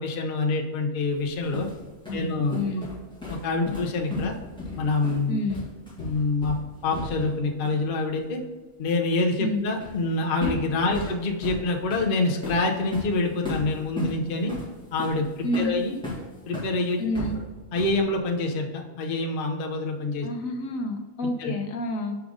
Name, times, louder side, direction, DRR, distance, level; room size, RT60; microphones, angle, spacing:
voice 1, 0.0-1.7 2.1-2.6 3.3-4.3 4.8-5.4 6.0-6.6 6.8-8.4 8.8-14.5 14.9-16.0 16.5-17.0 17.7-20.3 21.4-21.5, left 3 dB, 45° left, 2 dB, 0.8 m, -26 dB
sound 1, 1.2-7.4 7.6-7.9 9.8-10.1 10.4-16.7 17.1-18.1, left 2 dB, 5° left, 1.6 m, -35 dB
voice 2, 2.1-2.9 5.3-5.6 9.4-9.6 10.9-11.1 15.4-15.8 17.0-17.4 20.2-22.2, left 1 dB, 65° left, 3 dB, 1.2 m, -29 dB
6.1 x 5.0 x 3.6 m, 1.3 s
omnidirectional pair, 1.5 m